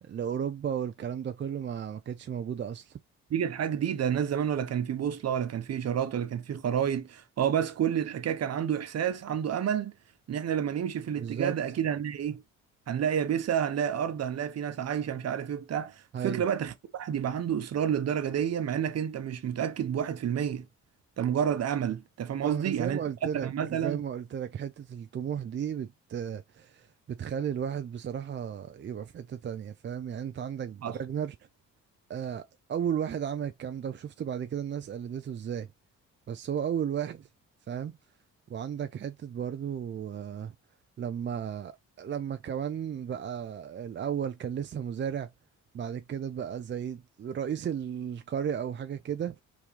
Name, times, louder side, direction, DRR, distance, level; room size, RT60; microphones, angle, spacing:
voice 1, 0.0-3.0 11.2-11.6 16.1-16.4 22.4-31.4 32.1-35.7 36.3-37.3 37.7-38.0 38.5-40.5 41.0-45.3 45.7-49.4, right 8 dB, 40° right, 0.5 m, -34 dB
voice 2, 3.3-9.9 10.3-12.4 12.9-20.7 21.2-23.0 23.4-24.0 30.8-31.0, right 9 dB, 55° right, 1.0 m, -29 dB
4.8 x 3.4 x 3.1 m
cardioid pair, 90°, 30 cm